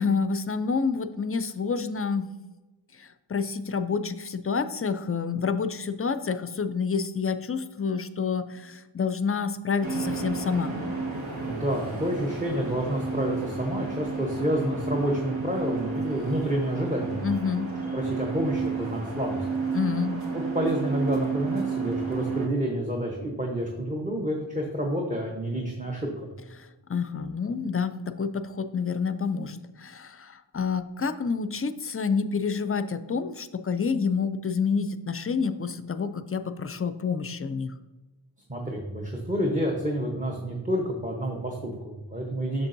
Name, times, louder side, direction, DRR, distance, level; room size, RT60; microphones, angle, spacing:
voice 1, 0.0-2.3 3.0-10.7 17.2-17.7 19.7-20.2 26.6-37.7, left 5 dB, 30° left, 11 dB, 0.4 m, -28 dB
sound 1, 9.8-22.5, right 4 dB, 80° right, 1.4 m, -31 dB
voice 2, 11.4-17.3 17.9-19.4 20.3-26.1 38.5-42.7, equal, 15° right, 0 dB, 0.9 m, -29 dB
7.2 x 6.5 x 2.6 m, 1.2 s
wide cardioid pair, 85°, 47 cm